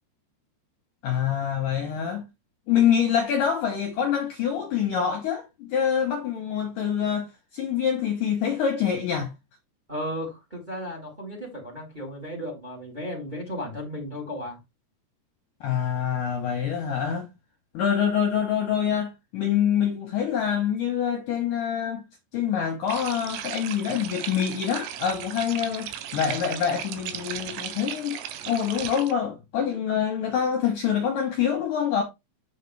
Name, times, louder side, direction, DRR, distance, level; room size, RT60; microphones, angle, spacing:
voice 1, 1.0-2.2 2.7-9.3 15.6-17.3 17.7-22.0 22.3-32.0, left 8 dB, 65° left, 2.2 m, -26 dB
voice 2, 9.9-14.6, equal, 10° right, 2.9 m, -35 dB
sound 1, 22.9-29.1, right 10 dB, 85° right, 3.0 m, -36 dB
8.9 x 5.8 x 3.3 m
omnidirectional pair, 4.8 m